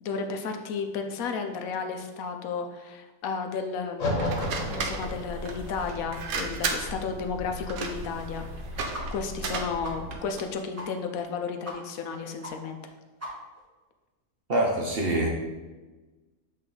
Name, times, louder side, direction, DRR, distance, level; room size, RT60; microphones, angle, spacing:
voice 1, 0.0-8.8 9.1-12.8, left 5 dB, 75° left, 5 dB, 1.0 m, -33 dB
sound 1, 4.0-10.2, left 1 dB, 60° left, 1.4 m, -35 dB
sound 2, 4.2-10.5, right 4 dB, 75° right, 1.2 m, -35 dB
sound 3, 8.9-9.1 9.4-9.5 9.8-10.0 10.3-10.4 10.8-10.9 11.2-11.3 11.6-11.8 12.0-12.1 12.4-12.5 12.8-12.9 13.2-13.6, equal, 15° right, 0.8 m, -39 dB
voice 2, 14.5-15.3, right 1 dB, 50° right, 0 dB, 0.8 m, -25 dB
7.7 x 3.2 x 3.8 m, 1.2 s
omnidirectional pair, 1.5 m